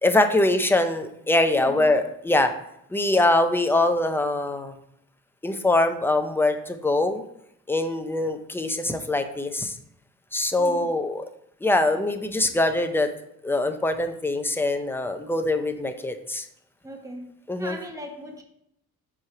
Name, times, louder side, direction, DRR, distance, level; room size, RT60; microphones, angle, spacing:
voice 1, 0.0-2.5 2.9-4.8 5.4-7.2 7.7-9.8 10.3-11.2 11.6-13.1 13.4-16.5 17.5-17.8, left 2 dB, 5° left, 7 dB, 0.5 m, -23 dB
voice 2, 1.6-1.9 10.6-10.9 16.8-18.4, equal, 10° right, 3 dB, 1.0 m, -38 dB
7.4 x 3.2 x 5.8 m, 0.77 s
cardioid pair, 135°, 35 cm